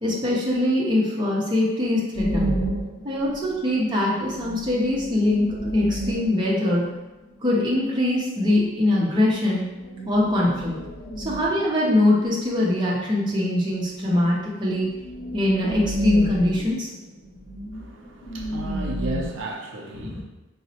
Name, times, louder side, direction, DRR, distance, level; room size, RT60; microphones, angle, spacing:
voice 1, 0.0-2.6 3.0-6.8 7.4-9.6 10.1-10.8 11.2-14.9 15.3-16.9, left 1 dB, 20° right, -5 dB, 0.6 m, -22 dB
sound 1, 2.1-3.7 4.0-4.1 4.2-7.4 9.7-11.8 14.3-14.4 14.7-19.5, right 1 dB, 70° left, 0.4 m, -31 dB
voice 2, 17.7-20.2, right 2 dB, 70° right, 0 dB, 0.4 m, -34 dB
3.9 x 2.0 x 2.7 m, 1.1 s
head